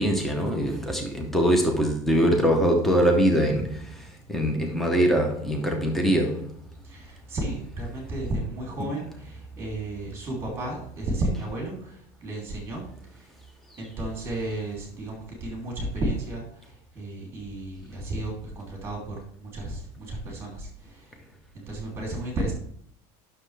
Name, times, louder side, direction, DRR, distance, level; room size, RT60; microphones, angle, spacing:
voice 1, 0.0-6.6 8.8-8.9, equal, ahead, 0.8 m, -23 dB
voice 2, 6.8-12.8 13.1-13.3 13.8-21.1 21.5-22.5, right 2 dB, 15° right, 2.8 m, -33 dB
9.6 x 6.6 x 3.3 m
cardioid pair, 170°, 16 cm